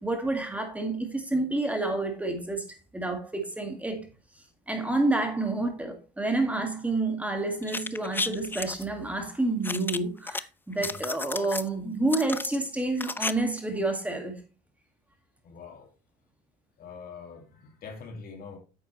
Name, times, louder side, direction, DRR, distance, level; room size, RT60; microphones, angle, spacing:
voice 1, 0.0-2.6 2.9-4.1 4.7-14.4, right 2 dB, 10° right, 2.0 m, -29 dB
sound 1, 7.6-8.8 9.6-10.4 10.7-11.7 12.1-13.3 13.6-13.7, left 3 dB, 10° left, 0.4 m, -33 dB
voice 2, 15.4-15.9 16.8-18.6, left 5 dB, 60° left, 2.3 m, -44 dB
9.0 x 7.7 x 3.1 m
cardioid pair, 110°, 17 cm